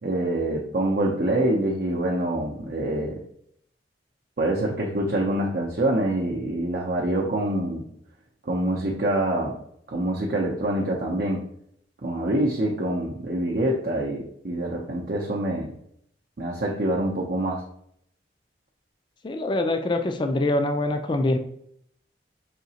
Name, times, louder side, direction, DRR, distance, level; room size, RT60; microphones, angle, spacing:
voice 1, 0.0-3.2 4.4-7.9 8.5-9.6 9.9-11.4 12.0-15.7 16.4-17.6, right 1 dB, 55° right, -3 dB, 0.6 m, -25 dB
voice 2, 19.2-21.4, left 2 dB, 25° left, 6 dB, 0.4 m, -24 dB
5.0 x 2.8 x 2.8 m, 0.70 s
head